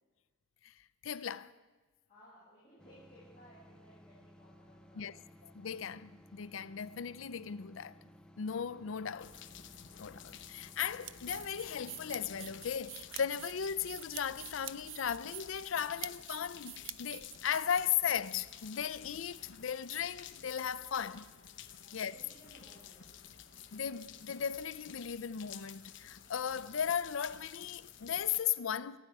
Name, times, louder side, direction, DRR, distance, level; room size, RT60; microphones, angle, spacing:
voice 1, 1.0-1.5 5.0-5.2 5.4-8.0 8.4-9.4 10.0-21.3 21.9-22.1 23.7-29.0, left 8 dB, 80° left, 0.5 m, -36 dB
voice 2, 2.1-5.4 21.8-23.4, equal, 30° left, 6.7 m, -61 dB
sound 1, 2.8-12.8, equal, 5° left, 0.7 m, -59 dB
sound 2, 9.2-28.4, left 9 dB, 65° left, 0.9 m, -52 dB
sound 3, 10.8-18.2, right 13 dB, 70° right, 0.5 m, -47 dB
27.5 x 9.7 x 4.8 m
head